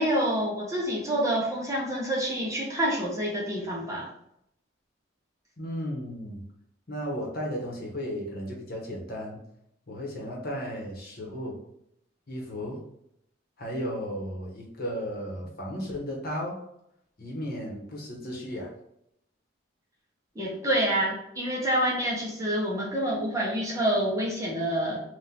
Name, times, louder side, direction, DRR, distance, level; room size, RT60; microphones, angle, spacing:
voice 1, 0.0-4.1 20.3-25.0, right 1 dB, 15° right, -3 dB, 0.9 m, -27 dB
voice 2, 5.6-6.4 6.9-9.4 9.9-11.6 12.3-12.8 13.6-16.6 17.2-18.7, equal, 50° left, -2 dB, 1.1 m, -34 dB
3.8 x 2.5 x 4.3 m, 0.77 s
head